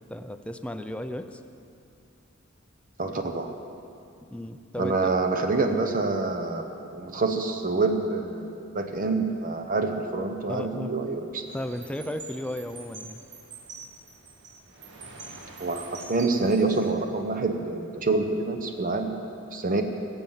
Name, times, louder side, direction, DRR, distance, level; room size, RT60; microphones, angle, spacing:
voice 1, 0.0-1.4 4.3-5.1 10.5-10.9 11.5-13.2, left 1 dB, 5° left, 7 dB, 0.5 m, -34 dB
voice 2, 3.0-3.5 4.8-6.6 6.9-11.4 15.6-19.2 19.5-19.8, right 3 dB, 40° right, 5 dB, 0.9 m, -26 dB
sound 1, 11.5-16.9, right 4 dB, 60° right, 1.8 m, -45 dB
19.0 x 7.9 x 7.3 m, 2.5 s
head